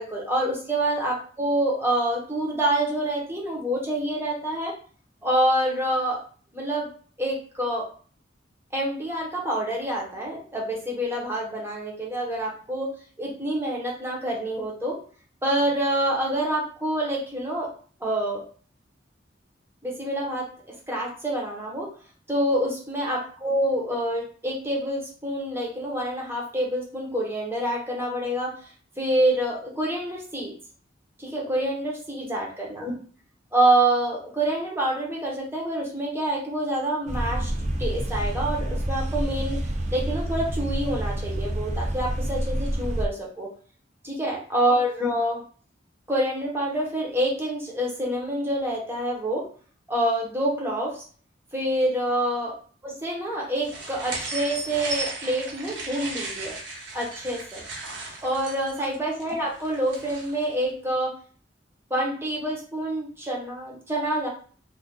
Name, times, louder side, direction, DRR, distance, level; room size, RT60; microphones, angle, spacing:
voice 1, 0.0-4.7 5.2-6.2 6.5-6.9 7.2-7.9 8.7-15.0 15.4-17.7 18.0-18.4 19.8-21.9 22.3-28.5 29.0-30.5 31.2-32.9 33.5-37.5 37.8-39.6 39.9-43.5 44.0-45.4 46.1-49.5 49.9-51.0 51.5-52.6 52.8-56.5 56.9-57.6 58.2-61.1 61.9-64.3, right 1 dB, 15° right, -2 dB, 0.9 m, -27 dB
sound 1, 37.1-43.1, right 1 dB, 40° right, 0.4 m, -28 dB
sound 2, 53.6-60.5, right 2 dB, 75° right, 1.0 m, -36 dB
2.5 x 2.4 x 3.6 m, 0.43 s
head